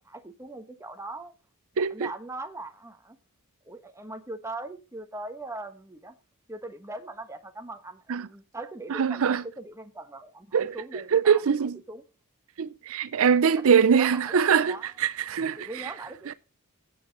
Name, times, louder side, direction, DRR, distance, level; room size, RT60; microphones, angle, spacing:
voice 1, 0.0-1.3 1.8-3.2 3.6-6.2 6.5-11.4 11.9-12.0 13.5-14.9 15.6-16.3, right 2 dB, 15° right, 1.1 m, -40 dB
voice 2, 1.8-2.1 8.1-8.3 8.9-9.4 10.5-11.8 12.6-15.9 16.3-16.4, right 6 dB, 65° right, 0.5 m, -23 dB
16.5 x 7.8 x 3.9 m
head